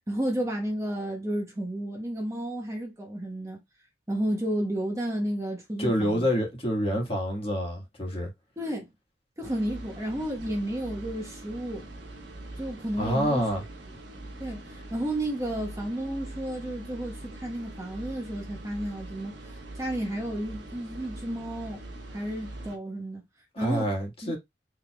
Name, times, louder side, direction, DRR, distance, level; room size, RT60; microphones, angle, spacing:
voice 1, 0.1-3.6 4.1-6.3 8.6-8.9 9.4-11.9 12.6-13.5 14.4-21.8 22.1-23.2 23.6-23.9 24.2-24.3, right 1 dB, 15° right, 1.1 m, -32 dB
voice 2, 5.8-8.3 13.0-13.6 23.5-24.4, equal, 35° left, 1.6 m, -27 dB
sound 1, 9.4-22.8, right 1 dB, 85° right, 1.3 m, -43 dB
4.6 x 3.4 x 2.3 m
head